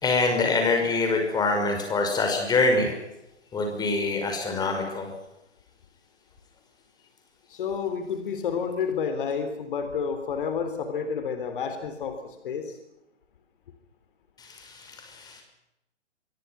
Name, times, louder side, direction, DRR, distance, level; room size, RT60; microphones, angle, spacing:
voice 1, 0.0-3.0 3.5-5.1 14.4-15.4, left 3 dB, 10° left, 4 dB, 5.7 m, -25 dB
voice 2, 7.5-12.8, left 6 dB, 45° left, 8 dB, 3.6 m, -30 dB
25.5 x 23.5 x 6.0 m, 0.89 s
figure-of-eight pair, 130°, 35 cm